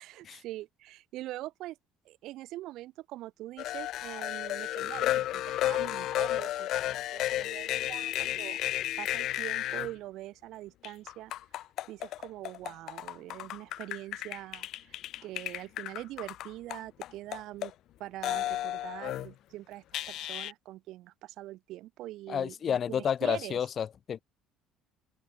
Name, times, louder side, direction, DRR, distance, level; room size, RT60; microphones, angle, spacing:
voice 1, 0.0-1.8 2.1-8.6 9.0-11.3 11.6-17.7 18.0-23.7, right 16 dB, 65° right, 3.6 m, -43 dB
sound 1, 3.6-9.9 10.8-17.7 18.2-19.3 19.9-20.5, left 14 dB, 55° left, 0.9 m, -33 dB
voice 2, 22.3-24.2, left 8 dB, 35° left, 0.5 m, -30 dB
open air
cardioid pair, 140°, 0 cm